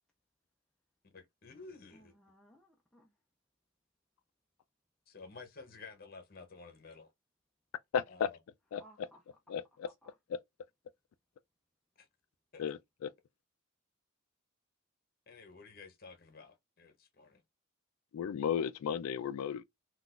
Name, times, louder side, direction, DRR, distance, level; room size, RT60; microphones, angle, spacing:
voice 1, 1.1-2.2 5.1-7.1 8.1-8.4 12.0-12.1 12.5-12.6 15.3-17.4, left 4 dB, 45° left, 0.8 m, -52 dB
voice 2, 1.9-3.1 8.8-9.5 9.8-10.1, right 1 dB, 5° left, 0.3 m, -62 dB
voice 3, 7.9-8.3 8.7-8.8 9.5-9.9 10.3-10.4 12.6-13.1 18.1-19.6, left 7 dB, 85° left, 0.3 m, -34 dB
3.8 x 2.4 x 2.4 m
head